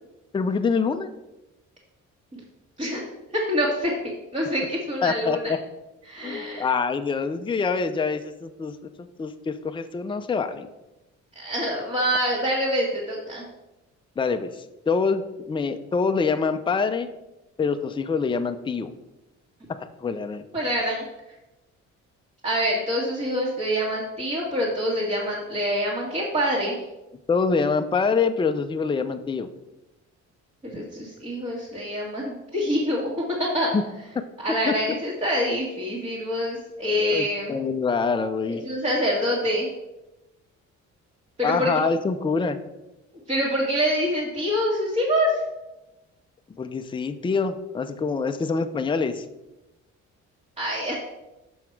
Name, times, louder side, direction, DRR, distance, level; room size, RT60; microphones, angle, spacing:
voice 1, 0.3-1.1 5.0-5.4 6.2-10.7 14.2-15.2 15.5-17.1 17.6-18.9 20.0-20.4 27.3-29.5 33.7-33.8 34.6-34.7 36.9-38.6 41.4-42.6 46.6-49.2, left 5 dB, 15° left, 8 dB, 0.5 m, -25 dB
voice 2, 3.3-3.9 4.3-5.5 6.0-6.7 11.3-13.4 20.5-21.0 22.4-26.8 30.6-33.7 34.4-37.6 38.5-39.7 41.4-41.7 43.3-45.4 50.6-51.0, equal, 20° right, -5 dB, 1.6 m, -25 dB
6.2 x 5.7 x 4.6 m, 1.0 s
cardioid pair, 90°, 30 cm